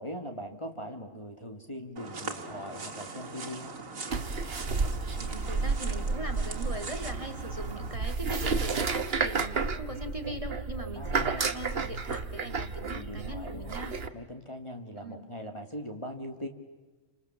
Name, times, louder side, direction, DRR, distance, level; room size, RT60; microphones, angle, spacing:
voice 1, 0.0-3.8 10.9-11.5 12.9-13.8 14.1-16.5, equal, 20° left, 3 dB, 2.4 m, -41 dB
sound 1, 2.0-8.0, right 3 dB, 85° right, 2.4 m, -41 dB
sound 2, 4.1-14.1, right 4 dB, 50° right, 1.5 m, -32 dB
voice 2, 5.1-14.0 15.0-15.3, right 1 dB, 25° right, 5 dB, 2.5 m, -40 dB
29.5 x 27.0 x 7.2 m, 1.3 s
omnidirectional pair, 1.4 m